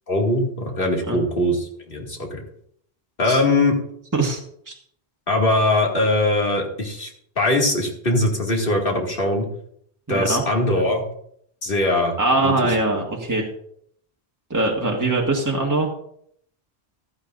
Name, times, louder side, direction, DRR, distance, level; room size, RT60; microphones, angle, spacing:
voice 1, 0.1-2.4 3.2-3.8 5.3-7.1 7.4-9.5 10.1-11.0 11.6-12.1 12.4-12.5, left 1 dB, 55° left, -1 dB, 2.5 m, -21 dB
voice 2, 10.1-10.4 12.2-13.5 14.5-15.9, right 2 dB, 15° right, -1 dB, 1.6 m, -22 dB
15.5 x 12.0 x 2.6 m, 0.67 s
omnidirectional pair, 1.1 m